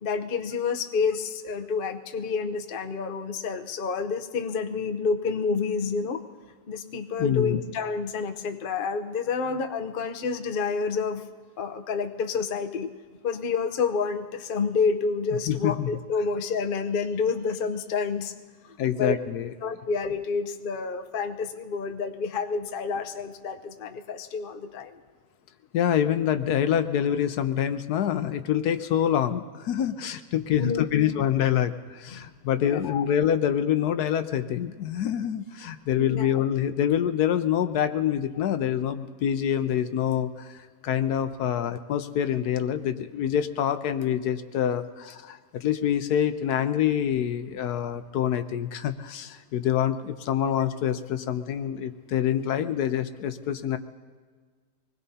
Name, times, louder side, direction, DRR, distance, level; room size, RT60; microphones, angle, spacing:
voice 1, 0.0-6.2 6.7-11.2 11.6-12.9 13.2-18.3 19.0-19.2 19.6-24.9 30.6-31.1 32.1-32.3 32.7-33.0 36.0-36.3, left 5 dB, 55° left, 6 dB, 0.6 m, -29 dB
voice 2, 7.2-7.6 15.5-15.9 18.8-19.5 25.7-53.8, left 10 dB, 70° left, 10 dB, 1.1 m, -26 dB
25.0 x 20.0 x 2.8 m, 1.5 s
omnidirectional pair, 1.9 m